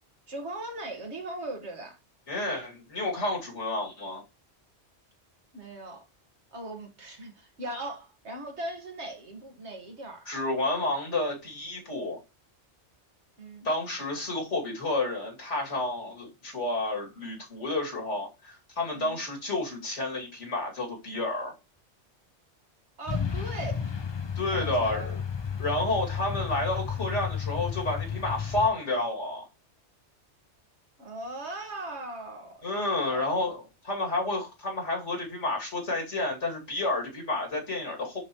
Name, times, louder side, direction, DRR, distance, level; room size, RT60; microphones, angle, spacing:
voice 1, 0.3-2.0 5.5-6.0 6.5-10.3 13.4-13.7 18.9-19.2 23.0-23.9 24.5-25.1 31.0-32.7 33.0-33.4, right 1 dB, 70° right, 2.0 m, -39 dB
voice 2, 2.3-4.2 10.3-12.2 13.6-21.5 24.4-25.2 25.6-29.5 32.6-38.2, left 2 dB, 90° left, 2.9 m, -30 dB
Truck, 23.1-28.7, left 7 dB, 35° left, 0.5 m, -32 dB
11.0 x 4.2 x 3.1 m
omnidirectional pair, 1.2 m